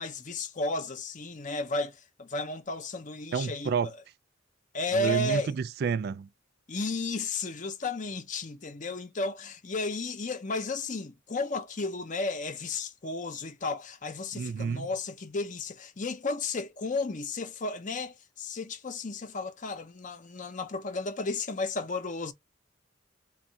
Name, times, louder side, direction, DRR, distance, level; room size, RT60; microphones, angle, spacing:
voice 1, 0.0-3.7 4.7-5.5 6.7-22.3, left 2 dB, 40° left, 0.7 m, -33 dB
voice 2, 3.3-3.9 4.9-6.3 14.3-14.9, right 6 dB, 55° right, 0.3 m, -30 dB
3.6 x 2.3 x 4.0 m
head